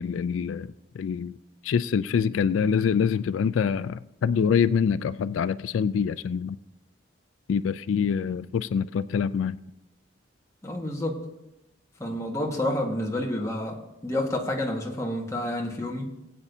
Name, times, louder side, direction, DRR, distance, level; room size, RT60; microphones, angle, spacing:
voice 1, 0.0-1.4 1.6-6.6 7.5-9.6, left 6 dB, 90° left, 0.3 m, -25 dB
voice 2, 10.6-11.2 12.0-16.1, left 1 dB, 15° left, 1.4 m, -29 dB
20.0 x 8.5 x 2.7 m
head